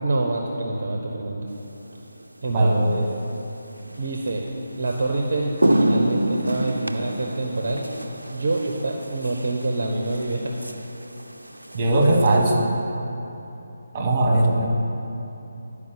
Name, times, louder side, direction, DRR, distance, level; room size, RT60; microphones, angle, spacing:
voice 1, 0.0-1.5 2.4-3.1 4.0-4.5 4.8-7.9 8.3-10.6, right 2 dB, 50° right, 1 dB, 0.8 m, -26 dB
sound 1, 1.9-2.1 4.3-4.4 4.9-5.0 5.3-12.5, right 1 dB, 75° right, 0.5 m, -27 dB
voice 2, 2.5-2.9 11.7-12.7 13.9-14.7, right 1 dB, 25° right, 0 dB, 1.5 m, -19 dB
11.0 x 4.9 x 6.9 m, 3.0 s
figure-of-eight pair, 145°, 0 cm